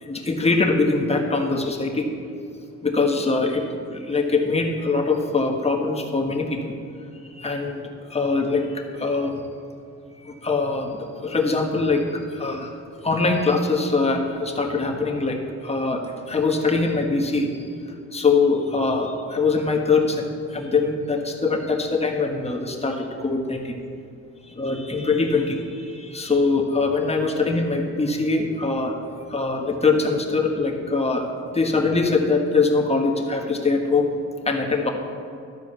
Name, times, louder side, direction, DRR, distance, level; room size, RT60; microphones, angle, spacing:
voice 1, 0.0-2.1 2.8-6.6 7.4-9.4 10.2-12.7 13.0-16.0 16.3-17.6 18.1-23.7 24.5-28.9 29.3-31.3 31.5-34.1 34.4-34.9, left 3 dB, 20° left, 2 dB, 1.4 m, -23 dB
12.5 x 4.7 x 6.8 m, 2.5 s
cardioid pair, 90°, 30 cm